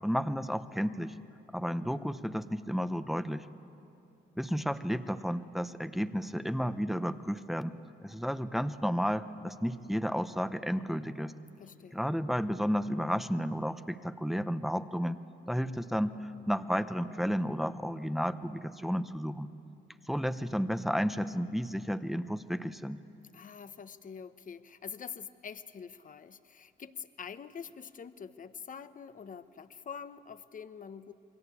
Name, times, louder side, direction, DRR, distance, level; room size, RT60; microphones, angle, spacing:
voice 1, 0.0-1.1 1.5-3.5 4.4-7.7 8.0-11.3 11.9-15.2 15.5-19.5 20.1-23.0, equal, ahead, 10 dB, 0.9 m, -32 dB
voice 2, 11.6-12.0 23.3-31.1, left 6 dB, 40° left, 11 dB, 1.0 m, -45 dB
28.5 x 22.5 x 8.4 m, 2.8 s
cardioid pair, 90°, 20 cm